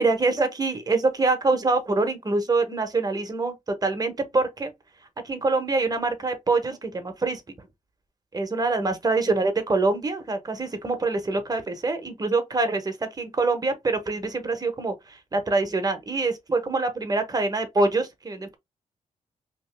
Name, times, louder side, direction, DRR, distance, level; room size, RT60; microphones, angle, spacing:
voice 1, 0.0-3.5 3.8-4.7 5.2-7.4 8.3-18.6, right 3 dB, 30° right, 0.9 m, -25 dB
2.9 x 2.6 x 3.2 m
cardioid pair, 90°, 14 cm